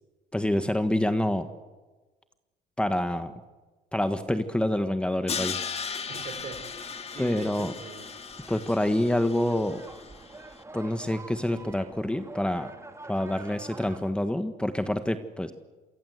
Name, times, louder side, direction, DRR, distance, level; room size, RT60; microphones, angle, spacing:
voice 1, 0.3-1.5 2.8-3.3 3.9-5.6 7.2-7.7 8.5-9.8 10.7-12.7 13.1-15.5, left 1 dB, 5° left, 9 dB, 1.4 m, -27 dB
Crash cymbal, 5.3-10.3, left 6 dB, 35° left, 2.0 m, -37 dB
sound 1, 5.9-14.1, right 2 dB, 15° right, 2.4 m, -48 dB
voice 2, 6.1-8.1, right 5 dB, 50° right, 8 dB, 4.4 m, -43 dB
27.5 x 23.5 x 8.1 m, 1.2 s
cardioid pair, 110°, 17 cm